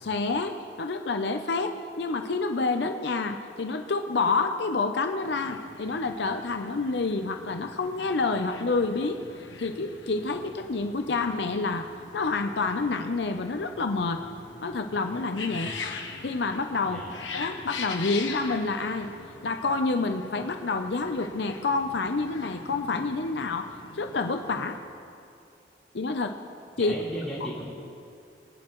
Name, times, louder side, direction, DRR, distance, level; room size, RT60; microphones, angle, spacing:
voice 1, 0.0-9.2 9.6-11.8 12.1-14.2 14.6-15.7 16.2-17.0 17.3-19.1 19.4-23.7 23.9-24.8 25.9-26.3 26.8-27.0, left 3 dB, 65° left, 6 dB, 0.6 m, -28 dB
sound 1, 5.2-24.8, left 4 dB, 85° left, 1.2 m, -43 dB
voice 2, 16.8-17.2 26.8-27.6, equal, ahead, -10 dB, 3.8 m, -37 dB
24.5 x 9.6 x 3.1 m, 2.5 s
head